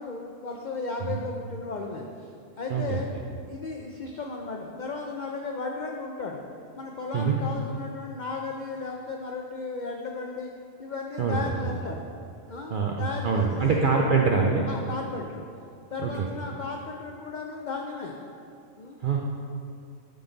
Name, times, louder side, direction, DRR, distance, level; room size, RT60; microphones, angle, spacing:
voice 1, 0.0-2.3 2.6-3.1 3.5-6.4 6.8-10.5 10.8-12.0 12.5-13.8 14.7-15.5 15.9-18.2 18.8-19.0, left 3 dB, 80° left, 1 dB, 0.4 m, -35 dB
voice 2, 11.2-11.7 12.7-14.7 16.0-16.3 19.0-19.2, right 5 dB, 70° right, -1 dB, 0.5 m, -24 dB
10.0 x 3.9 x 3.9 m, 2.4 s
omnidirectional pair, 1.4 m